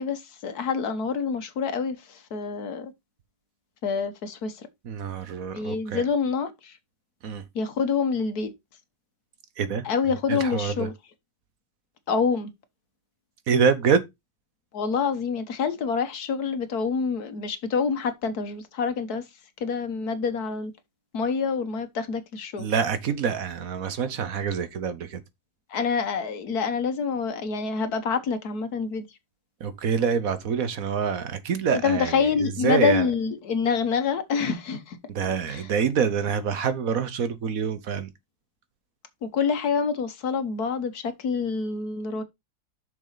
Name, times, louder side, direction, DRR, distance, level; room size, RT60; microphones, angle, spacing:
voice 1, 0.0-2.9 3.8-4.7 5.5-6.8 7.5-8.5 9.8-10.9 12.1-12.5 14.7-19.2 19.6-20.7 21.1-22.7 25.7-29.1 31.8-35.0 35.5-35.7 39.2-42.2, left 5 dB, 70° left, 1.7 m, -27 dB
voice 2, 4.8-6.0 7.2-7.4 9.6-9.9 10.3-10.9 13.5-14.0 22.6-25.2 29.6-32.1 32.4-33.1 35.1-38.1, right 6 dB, 65° right, 1.3 m, -26 dB
7.0 x 6.4 x 4.0 m
omnidirectional pair, 1.7 m